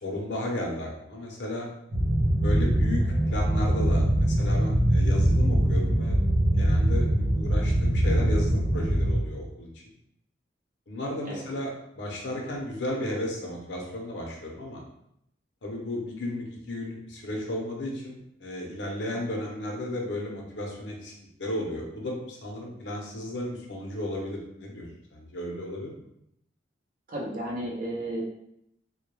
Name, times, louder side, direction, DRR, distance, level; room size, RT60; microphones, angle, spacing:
voice 1, 0.0-1.7 2.4-6.2 6.5-9.7 10.9-14.8 15.6-21.1 21.4-24.9 25.1-26.0, left 1 dB, 70° left, -1 dB, 0.6 m, -34 dB
sound 1, 1.9-9.2, right 1 dB, 75° right, 0.8 m, -23 dB
voice 2, 27.1-28.2, right 1 dB, 45° right, -2 dB, 0.6 m, -33 dB
2.2 x 2.1 x 3.0 m, 0.76 s
head